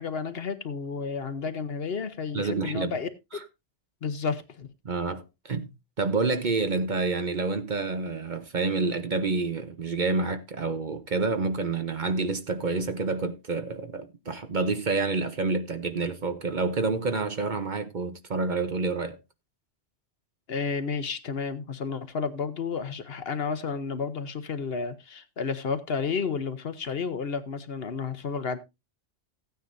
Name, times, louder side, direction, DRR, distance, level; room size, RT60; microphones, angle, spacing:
voice 1, 0.0-3.4 4.0-4.7 20.5-28.6, left 5 dB, 60° left, 1.1 m, -31 dB
voice 2, 2.3-3.0 4.8-5.7 6.0-19.2, right 3 dB, 45° right, 0.9 m, -28 dB
15.5 x 9.2 x 2.6 m
omnidirectional pair, 1.2 m